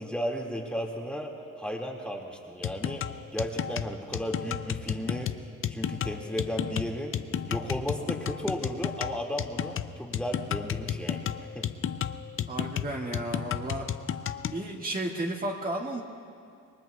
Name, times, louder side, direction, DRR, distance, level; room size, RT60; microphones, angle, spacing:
voice 1, 0.0-3.1 3.3-5.3 5.7-7.2 7.4-11.7, equal, 5° left, -1 dB, 2.1 m, -34 dB
sound 1, 2.6-14.6, left 9 dB, 45° left, 0.6 m, -32 dB
voice 2, 12.5-13.9 14.5-16.0, right 1 dB, 30° right, -1 dB, 1.9 m, -33 dB
27.0 x 21.0 x 2.3 m, 2.3 s
cardioid pair, 90°, 30 cm